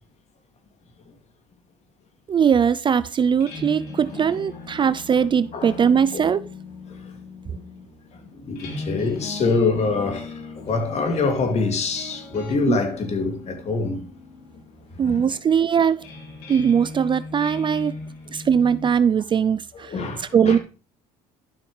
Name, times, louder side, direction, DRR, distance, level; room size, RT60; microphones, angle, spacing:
voice 1, 2.3-6.4 12.7-12.8 15.0-16.1 16.5-17.9 18.3-19.9 20.3-20.6, right 7 dB, 30° right, 0.4 m, -20 dB
sound 1, 3.2-18.9, left 3 dB, 75° left, 3.0 m, -39 dB
voice 2, 8.3-14.1 15.0-15.3 19.7-20.6, left 4 dB, 45° left, 2.5 m, -25 dB
12.0 x 6.2 x 3.3 m
supercardioid pair, 85°, 16 cm